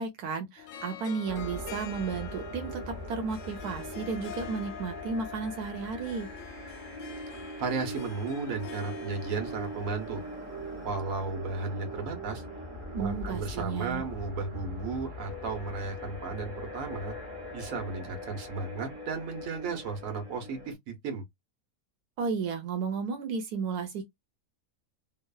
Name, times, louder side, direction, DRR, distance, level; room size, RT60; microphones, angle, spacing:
voice 1, 0.0-6.3 12.9-14.0 22.2-24.1, right 5 dB, 85° right, 1.1 m, -33 dB
Harp, 0.6-10.9, left 10 dB, 70° left, 0.8 m, -46 dB
sound 1, 1.3-20.7, equal, 40° right, 1.0 m, -41 dB
voice 2, 7.6-10.2 10.8-12.4 13.0-17.1 17.5-21.2, right 4 dB, 65° right, 1.3 m, -34 dB
3.0 x 2.1 x 2.3 m
omnidirectional pair, 1.6 m